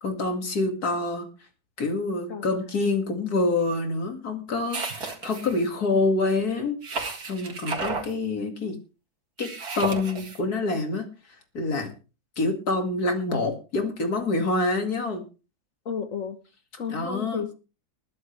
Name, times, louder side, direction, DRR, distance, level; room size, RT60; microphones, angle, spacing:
voice 1, 0.0-1.2 1.8-6.8 7.2-8.8 9.4-9.5 9.8-11.0 11.5-11.9 12.4-15.2 16.9-17.4, left 3 dB, 80° left, 5 dB, 2.8 m, -26 dB
voice 2, 2.3-2.6 15.8-16.4 16.8-17.5, left 6 dB, 60° left, 9 dB, 1.5 m, -33 dB
sound 1, 4.7-5.7 6.8-8.1 9.4-10.4, right 4 dB, 80° right, 2.6 m, -33 dB
21.0 x 10.5 x 3.3 m, 0.32 s
omnidirectional pair, 1.6 m